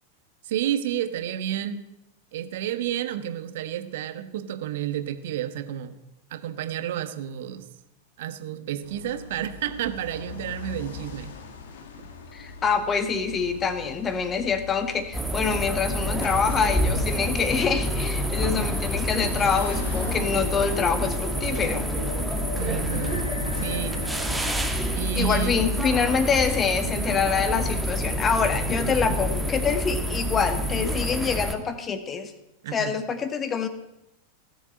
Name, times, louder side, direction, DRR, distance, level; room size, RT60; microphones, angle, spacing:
voice 1, 0.4-1.8 2.3-5.9 6.3-7.7 8.2-11.3 22.5-23.2 23.6-24.0 24.9-25.9 32.6-32.9, right 10 dB, 55° right, 9 dB, 1.4 m, -30 dB
sound 1, 8.8-26.7, left 6 dB, 55° left, 1.9 m, -42 dB
voice 2, 12.3-21.9 25.2-32.3 32.7-33.7, left 6 dB, 25° left, 10 dB, 1.7 m, -25 dB
sound 2, 15.1-31.5, equal, 5° right, 1.7 m, -28 dB
sound 3, 20.0-26.7, left 3 dB, 75° left, 1.4 m, -38 dB
17.5 x 7.9 x 7.8 m, 0.90 s
figure-of-eight pair, 90°, 0 cm